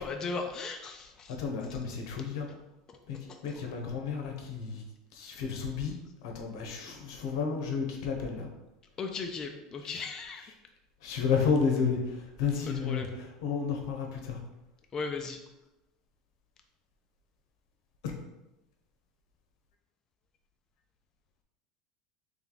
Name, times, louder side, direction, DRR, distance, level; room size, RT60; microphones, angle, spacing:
voice 1, 0.0-1.4 2.5-2.6 2.9-3.0 3.3-3.6 6.7-6.9 9.0-10.5 12.8-13.1 14.9-15.4, left 4 dB, 25° left, 4 dB, 0.3 m, -37 dB
voice 2, 1.3-2.5 3.1-4.8 5.1-5.9 6.2-8.5 9.8-10.0 11.0-14.4 18.0-18.1, left 5 dB, 85° left, 2 dB, 0.9 m, -32 dB
3.3 x 3.1 x 3.9 m, 0.96 s
cardioid pair, 155°, 2 cm